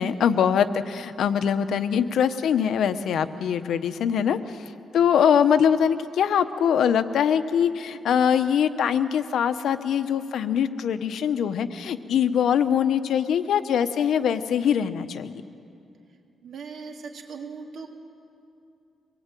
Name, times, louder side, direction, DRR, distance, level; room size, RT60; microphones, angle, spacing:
voice 1, 0.0-4.6 4.9-15.4, left 8 dB, 75° left, 10 dB, 1.0 m, -23 dB
voice 2, 16.4-17.9, right 5 dB, 60° right, 1 dB, 3.2 m, -39 dB
24.0 x 20.5 x 9.1 m, 2.6 s
cardioid pair, 145°, 0 cm